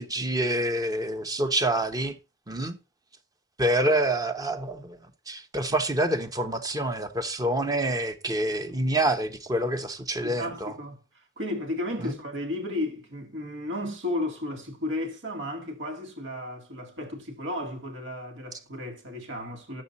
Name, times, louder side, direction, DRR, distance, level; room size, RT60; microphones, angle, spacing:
voice 1, 0.0-2.2 2.5-2.8 3.6-5.0 5.3-10.7 12.0-12.1, right 1 dB, 20° right, 1.1 m, -27 dB
voice 2, 10.2-19.8, left 1 dB, 75° right, 2.1 m, -34 dB
11.5 x 7.6 x 4.1 m
head